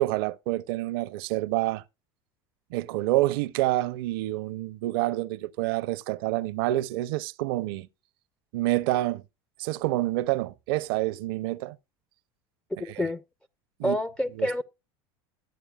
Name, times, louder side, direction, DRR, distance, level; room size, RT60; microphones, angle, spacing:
voice 1, 0.0-1.8 2.7-7.9 8.5-9.2 9.6-11.8 13.8-14.0 14.4-14.6, right 17 dB, 70° right, 0.5 m, -27 dB
voice 2, 12.8-13.2 13.8-14.6, equal, 5° left, 0.4 m, -28 dB
12.5 x 8.6 x 2.3 m
hypercardioid pair, 100°, 13 cm